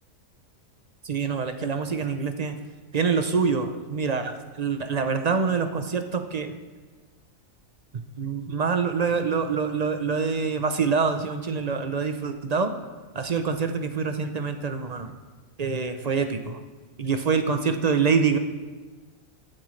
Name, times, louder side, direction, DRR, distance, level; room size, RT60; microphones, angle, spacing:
voice 1, 1.0-2.5 2.9-6.5 8.2-12.7 13.1-15.1 15.6-16.6 17.0-18.4, right 5 dB, 45° right, 7 dB, 0.5 m, -25 dB
18.5 x 8.7 x 3.2 m, 1.3 s
omnidirectional pair, 1.4 m